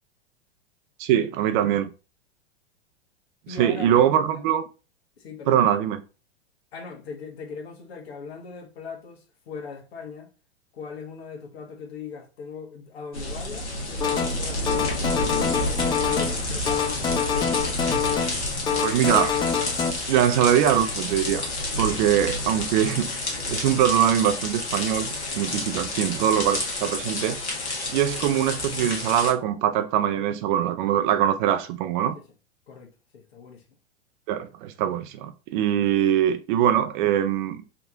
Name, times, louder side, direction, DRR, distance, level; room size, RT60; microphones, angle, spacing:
voice 1, 1.0-1.9 3.6-4.6 5.5-6.0 18.8-19.4 20.1-21.5 21.8-23.1 23.5-27.4 27.9-32.2 34.3-37.6, right 10 dB, 50° right, 0.6 m, -22 dB
voice 2, 3.5-4.3 5.2-5.7 6.7-10.3 10.7-17.6 25.9-26.0 32.7-33.8, left 5 dB, 65° left, 1.3 m, -40 dB
sound 1, 13.1-29.3, left 2 dB, 90° left, 1.3 m, -30 dB
sound 2, 14.0-14.4 14.7-16.4 16.7-18.4 18.7-19.9, left 7 dB, 15° left, 0.5 m, -25 dB
3.7 x 3.1 x 3.5 m
hypercardioid pair, 100°, 33 cm